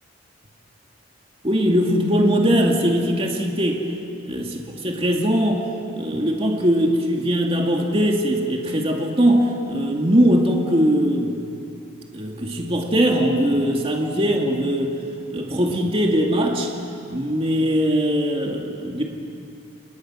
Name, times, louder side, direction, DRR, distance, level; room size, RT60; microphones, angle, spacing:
voice 1, 1.4-3.9 4.2-5.7 5.9-11.4 12.1-15.0 15.3-16.7 17.1-19.0, equal, 30° right, 0 dB, 2.3 m, -20 dB
29.0 x 29.0 x 6.3 m, 2.5 s
head